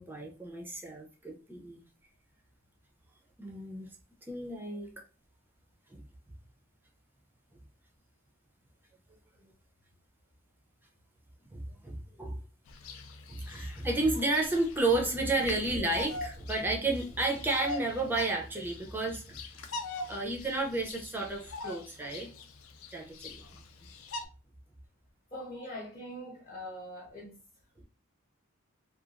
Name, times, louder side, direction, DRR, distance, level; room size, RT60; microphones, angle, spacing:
voice 1, 0.0-1.8 3.4-3.9 4.3-5.0 5.9-6.0 11.5-12.4 13.3-19.5 20.1-22.3 22.9-23.6, right 2 dB, 10° right, 0.4 m, -32 dB
Bird vocalization bird call bird song, 12.7-24.3, left 3 dB, 80° left, 0.4 m, -43 dB
voice 2, 25.3-27.3, equal, 30° left, 0.6 m, -42 dB
2.8 x 2.3 x 2.4 m
head